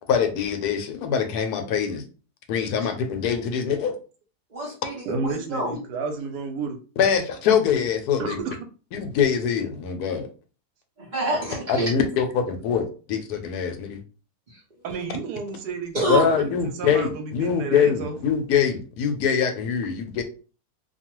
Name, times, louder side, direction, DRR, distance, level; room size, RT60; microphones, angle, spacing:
voice 1, 0.1-2.0 2.5-3.9 7.0-8.4 8.9-10.3 11.7-14.0 16.1-20.2, left 7 dB, 75° left, 6 dB, 1.1 m, -23 dB
voice 2, 4.5-5.8 11.0-11.9 15.9-16.3, right 2 dB, 45° right, -3 dB, 0.6 m, -27 dB
voice 3, 5.1-6.8 8.2-8.6 14.8-18.2, right 4 dB, 80° right, 5 dB, 1.2 m, -31 dB
2.6 x 2.3 x 2.9 m, 0.36 s
omnidirectional pair, 1.7 m